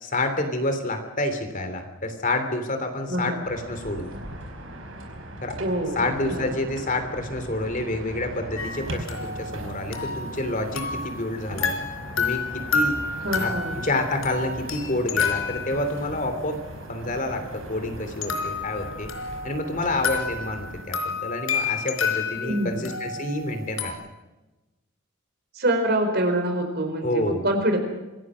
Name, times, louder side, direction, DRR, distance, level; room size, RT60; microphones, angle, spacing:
voice 1, 0.0-4.1 5.4-5.6 5.9-11.8 12.2-12.9 13.3-16.6 16.9-19.1 19.4-23.9 27.0-27.4, left 2 dB, 40° left, 7 dB, 3.2 m, -28 dB
voice 2, 3.1-3.4 5.6-6.5 13.2-13.8 22.4-22.9 25.5-27.8, right 1 dB, 50° right, 5 dB, 4.7 m, -25 dB
sound 1, 3.4-20.8, right 1 dB, 75° right, 4.8 m, -39 dB
sound 2, 8.6-11.3 11.6-16.2 18.2-23.9, left 5 dB, 85° left, 4.0 m, -30 dB
25.5 x 18.0 x 6.4 m, 1.1 s
head